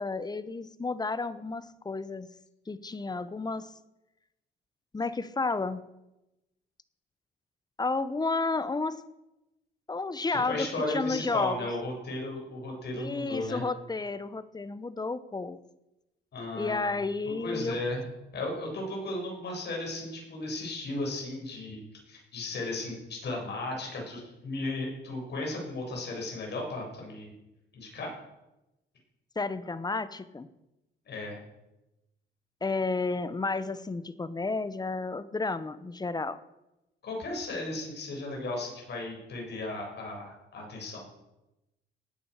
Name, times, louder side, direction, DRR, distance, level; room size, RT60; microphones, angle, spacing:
voice 1, 0.0-2.3 2.7-3.7 4.9-5.8 7.8-9.0 9.9-11.7 12.9-15.6 16.5-17.8 29.4-30.5 32.6-36.4, left 3 dB, 20° left, 14 dB, 1.0 m, -32 dB
voice 2, 10.3-13.6 16.3-16.9 17.4-18.1 18.3-21.8 22.1-27.3 27.7-28.1 31.1-31.4 37.0-41.0, left 2 dB, 60° left, 0 dB, 7.2 m, -35 dB
19.5 x 8.8 x 6.7 m, 0.94 s
cardioid pair, 90°, 20 cm